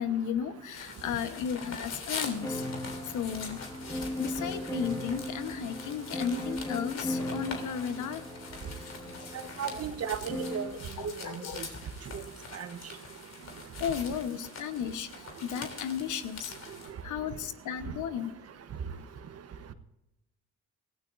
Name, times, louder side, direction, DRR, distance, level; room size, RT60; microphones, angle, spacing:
voice 1, 0.0-3.6 4.2-8.3 8.5-9.9 10.7-11.6 13.4-18.3 18.9-19.0, left 8 dB, 80° left, 10 dB, 1.2 m, -35 dB
sound 1, 0.7-16.9, left 5 dB, 60° left, 3.3 m, -44 dB
sound 2, 2.4-10.8, left 1 dB, 15° left, 1.8 m, -38 dB
voice 2, 9.6-10.6 11.0-11.4 12.5-12.7, right 7 dB, 55° right, 10 dB, 1.2 m, -34 dB
24.5 x 15.0 x 2.6 m, 0.90 s
cardioid pair, 90°, 30 cm